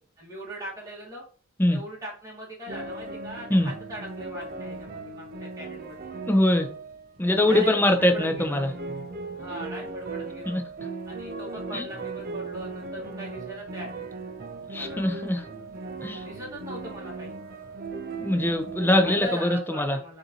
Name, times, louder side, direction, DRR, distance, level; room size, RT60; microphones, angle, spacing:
voice 1, 0.2-1.2 1.6-6.1 7.3-8.6 9.3-10.6 11.0-14.1 14.7-15.0 16.2-17.3 19.0-20.2, right 1 dB, 15° right, -5 dB, 1.5 m, -40 dB
sound 1, 2.7-19.3, right 3 dB, 45° right, 0.5 m, -37 dB
voice 2, 6.3-6.7 7.2-8.7 10.5-10.6 11.7-11.8 14.7-15.4 16.0-16.2 18.2-20.0, left 1 dB, 10° left, 6 dB, 0.5 m, -22 dB
6.6 x 2.7 x 2.8 m, 0.41 s
head